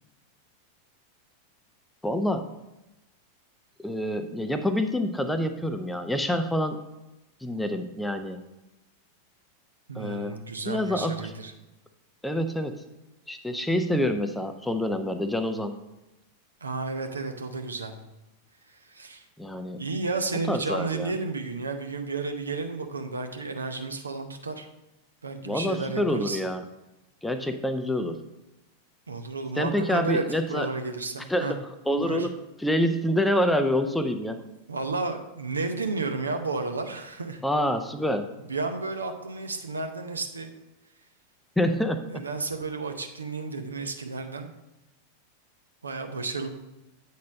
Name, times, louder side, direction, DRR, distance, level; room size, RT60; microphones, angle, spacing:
voice 1, 2.0-2.5 3.8-6.8 7.4-8.4 10.0-10.4 10.7-11.3 12.2-12.8 13.3-15.7 19.4-19.8 20.5-21.1 25.4-26.6 27.2-28.2 29.6-30.7 31.3-32.3 32.6-34.4 37.4-38.3 41.6-42.2, left 1 dB, 5° left, 8 dB, 0.5 m, -27 dB
voice 2, 9.9-11.5 16.6-17.9 18.7-19.3 19.7-24.7 25.2-26.4 29.1-30.2 30.5-31.5 32.0-32.3 34.7-37.4 38.5-40.5 42.0-44.5 45.8-46.5, right 3 dB, 75° right, 6 dB, 0.7 m, -32 dB
8.4 x 4.2 x 5.1 m, 0.98 s
figure-of-eight pair, 90°, 0 cm